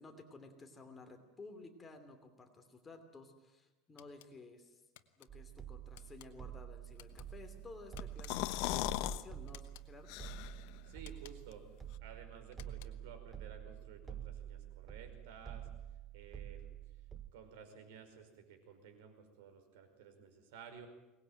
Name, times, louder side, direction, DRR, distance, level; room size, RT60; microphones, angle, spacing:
voice 1, 0.0-4.8 5.2-10.2, left 3 dB, 15° left, 5 dB, 2.8 m, -54 dB
sound 1, 4.0-4.3 4.9-5.3 5.9-6.3 6.9-7.3 7.9-8.6 9.5-9.9 11.0-11.6 12.5-13.1, left 14 dB, 85° left, 1.6 m, -59 dB
sound 2, 5.3-17.3, right 10 dB, 15° right, 1.2 m, -49 dB
sound 3, 8.0-9.2 9.6-9.7 10.1-10.7, left 15 dB, 60° left, 0.9 m, -37 dB
voice 2, 10.8-11.6 12.0-15.7 16.1-16.7 17.3-20.9, right 7 dB, 85° right, 8 dB, 5.1 m, -54 dB
23.0 x 20.0 x 9.1 m, 1.1 s
cardioid pair, 150°, 0 cm